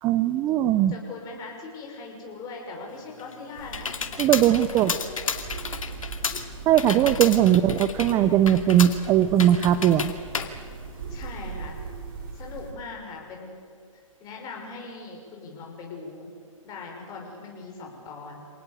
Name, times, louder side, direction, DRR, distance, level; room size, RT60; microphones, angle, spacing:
voice 1, 0.0-0.9 4.2-4.9 6.7-10.1, right 11 dB, 15° right, 12 dB, 0.6 m, -20 dB
voice 2, 0.8-3.9 4.5-5.3 11.1-11.8 12.3-13.6 13.9-16.3 16.6-18.4, left 4 dB, 20° left, 0 dB, 5.9 m, -40 dB
Computer keyboard, 2.9-11.5, left 5 dB, 75° left, 2.4 m, -33 dB
sound 1, 3.5-12.7, right 4 dB, 40° right, 4.8 m, -39 dB
27.5 x 18.5 x 8.1 m, 2.2 s
hypercardioid pair, 140°, 17 cm